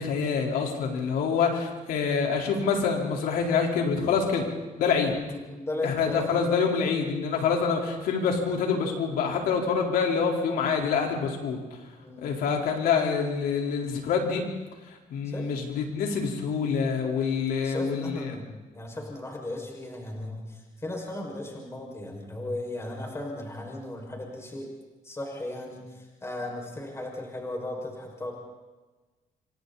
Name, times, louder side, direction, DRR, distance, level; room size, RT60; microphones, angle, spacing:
voice 1, 0.0-4.5 4.8-5.1 5.8-11.6 12.2-14.4 15.1-18.4, left 5 dB, 90° left, 1 dB, 4.3 m, -26 dB
voice 2, 5.3-6.4 12.0-12.3 15.2-15.5 17.5-24.7 25.0-28.3, left 1 dB, 20° left, -1 dB, 6.0 m, -36 dB
28.5 x 25.5 x 4.2 m, 1.2 s
cardioid pair, 105°, 15 cm